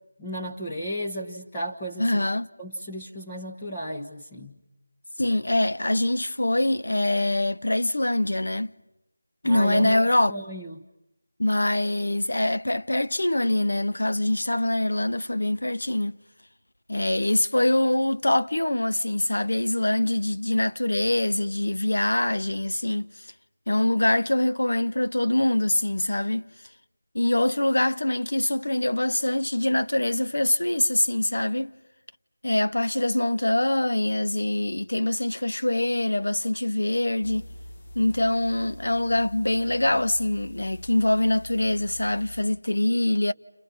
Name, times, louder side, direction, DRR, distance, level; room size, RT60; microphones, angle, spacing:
voice 1, 0.2-2.3 2.6-4.5 9.4-10.8, equal, 15° left, 1.3 m, -34 dB
voice 2, 2.0-2.5 5.2-8.7 9.4-10.3 11.4-16.2 16.9-23.1 23.7-26.5 27.1-31.7 32.4-37.5 37.9-43.3, left 1 dB, 75° left, 0.9 m, -24 dB
sound 1, 37.2-42.4, equal, 40° left, 2.1 m, -43 dB
30.0 x 30.0 x 5.6 m
figure-of-eight pair, 165°, 0 cm